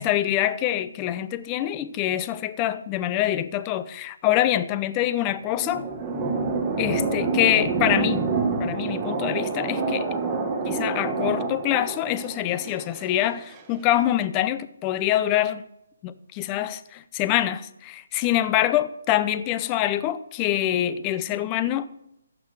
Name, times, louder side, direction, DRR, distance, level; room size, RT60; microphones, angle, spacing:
voice 1, 0.0-5.8 6.8-8.3 8.6-10.1 10.6-15.6 16.0-21.9, left 13 dB, 20° left, 0.5 m, -25 dB
sound 1, 5.1-13.6, right 4 dB, 15° right, 1.2 m, -27 dB
14.5 x 6.1 x 4.7 m
hypercardioid pair, 160°, 0 cm